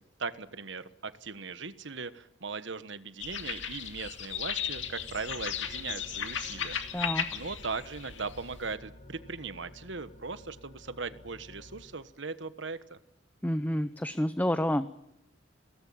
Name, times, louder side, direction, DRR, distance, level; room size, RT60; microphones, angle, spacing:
voice 1, 0.0-13.0, right 4 dB, 70° right, 13 dB, 1.3 m, -39 dB
sound 1, 3.2-8.7, left 8 dB, 75° left, 2.4 m, -36 dB
sound 2, 4.5-11.8, left 1 dB, 45° left, 7.3 m, -52 dB
voice 2, 6.9-7.2 13.4-14.9, left 1 dB, 10° left, 11 dB, 0.8 m, -29 dB
22.0 x 18.5 x 8.7 m, 0.82 s
head